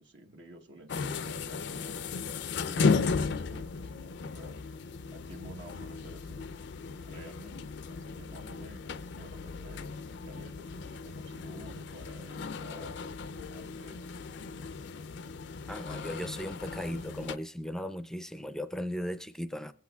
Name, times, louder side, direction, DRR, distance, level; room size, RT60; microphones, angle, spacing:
voice 1, 0.0-2.2 2.6-4.8 5.1-6.5 7.1-13.0 13.3-14.4, right 1 dB, 65° right, 1.0 m, -51 dB
sound 1, 0.9-17.4, left 4 dB, 60° left, 0.4 m, -35 dB
voice 2, 15.7-19.7, equal, 5° left, 0.5 m, -37 dB
22.5 x 8.4 x 2.3 m
head